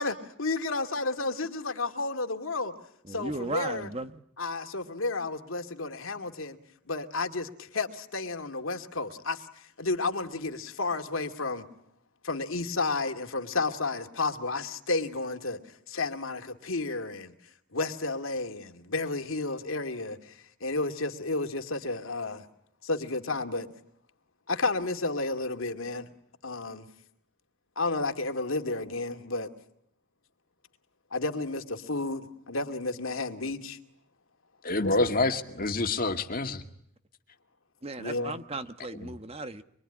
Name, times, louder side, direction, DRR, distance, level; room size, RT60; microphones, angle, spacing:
voice 1, 0.0-2.7 3.1-3.9 4.4-6.6 6.9-9.5 9.8-11.6 12.2-15.6 15.9-17.3 17.7-20.2 20.6-22.4 22.8-23.7 24.5-26.1 26.4-26.8 27.8-29.5 31.1-33.8 34.8-34.9 38.0-38.3, left 3 dB, 75° left, 2.4 m, -31 dB
voice 2, 3.0-4.2 37.8-39.6, right 2 dB, 30° right, 1.2 m, -36 dB
voice 3, 34.6-36.6 39.0-39.1, left 2 dB, 45° left, 2.1 m, -27 dB
25.0 x 23.5 x 9.9 m
head